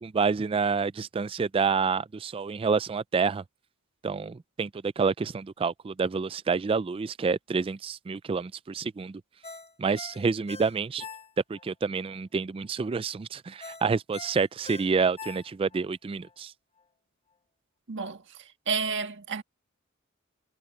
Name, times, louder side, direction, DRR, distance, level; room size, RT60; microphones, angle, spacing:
voice 1, 0.0-3.4 4.0-9.2 9.8-11.0 11.5-16.5, right 5 dB, 25° right, 0.3 m, -28 dB
Ringtone, 9.4-11.7 12.1-12.2 13.6-15.8 16.2-16.3, left 4 dB, 30° left, 2.3 m, -44 dB
voice 2, 17.9-18.2 18.7-19.4, right 5 dB, 60° right, 1.5 m, -30 dB
head